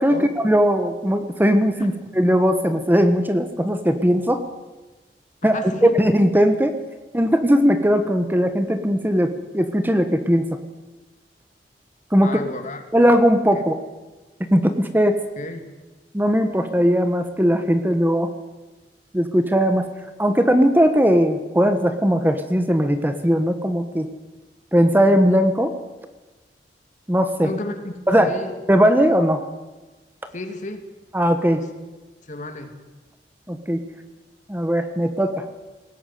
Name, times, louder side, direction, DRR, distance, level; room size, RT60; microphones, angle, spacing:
voice 1, 0.0-4.4 5.4-6.7 7.1-10.5 12.1-12.3 12.9-13.8 14.5-15.2 16.1-18.3 19.1-19.9 20.2-24.1 24.7-25.7 27.1-27.5 28.1-28.3 28.7-29.4 31.1-31.6 33.5-33.8 34.5-35.4, equal, 10° right, 8 dB, 1.2 m, -18 dB
voice 2, 5.5-6.0 12.2-12.8 13.5-13.6 15.4-15.6 27.4-28.6 30.3-30.8 31.6-31.7 32.3-32.7, left 2 dB, 45° left, 6 dB, 2.7 m, -32 dB
20.5 x 18.0 x 9.4 m, 1.2 s
head